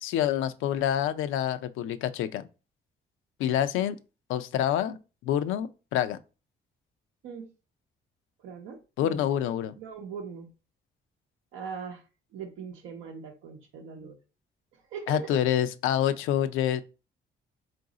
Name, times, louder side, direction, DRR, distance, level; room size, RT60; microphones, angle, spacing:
voice 1, 0.0-2.4 3.4-4.0 4.3-5.0 5.2-6.2 9.0-9.7 15.1-16.8, left 11 dB, 90° left, 0.4 m, -27 dB
voice 2, 8.4-9.2 9.8-10.5 11.5-12.0 12.3-14.2 14.9-15.4, right 6 dB, 90° right, 0.7 m, -40 dB
3.9 x 2.5 x 3.8 m
cardioid pair, 90°, 20 cm